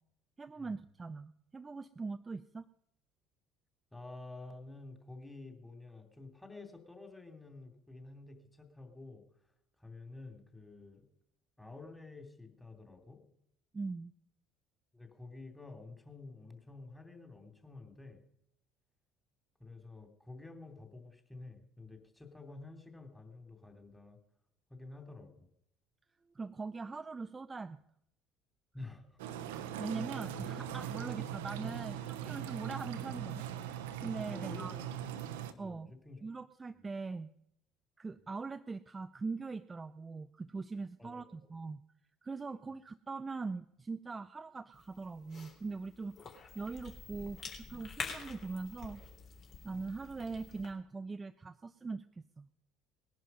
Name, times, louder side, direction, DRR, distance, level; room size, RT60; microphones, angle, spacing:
voice 1, 0.4-2.6 13.7-14.1 26.3-27.8 29.8-33.5 34.0-34.7 35.6-35.9 36.2-37.3 38.0-41.8 42.2-46.1 46.5-49.0 49.6-52.1 52.4-52.5, right 4 dB, 20° right, 11 dB, 0.5 m, -41 dB
voice 2, 3.9-9.5 9.8-11.1 11.6-13.2 14.9-18.2 19.6-24.2 24.7-25.5 28.7-29.2 30.3-30.4 34.3-35.3 35.6-36.3 36.7-36.8 38.2-38.3 41.0-41.4 42.5-42.7 46.2-46.3 49.7-50.0, left 3 dB, 10° left, 5 dB, 2.9 m, -50 dB
sound 1, 29.2-35.5, right 10 dB, 70° right, 0.9 m, -40 dB
Cough / Chewing mastication, 44.7-50.7, left 5 dB, 45° left, 3.4 m, -47 dB
19.5 x 11.0 x 5.5 m, 0.76 s
figure-of-eight pair, 60°, 0 cm